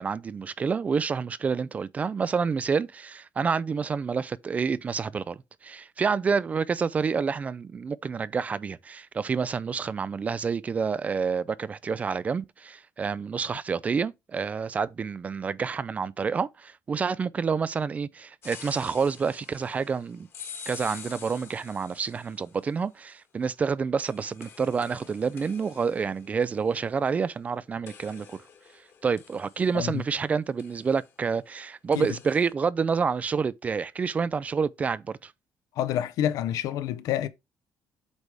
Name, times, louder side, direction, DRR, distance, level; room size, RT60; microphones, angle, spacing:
voice 1, 0.0-20.3 20.7-28.4 29.0-35.3, right 5 dB, 25° right, 0.3 m, -28 dB
sound 1, 18.4-22.7 24.0-27.5 27.9-30.2 30.6-31.1 31.9-32.5, left 7 dB, 40° left, 1.5 m, -47 dB
voice 2, 35.8-37.3, left 11 dB, 75° left, 0.7 m, -28 dB
8.2 x 3.4 x 4.8 m
cardioid pair, 165°, 6 cm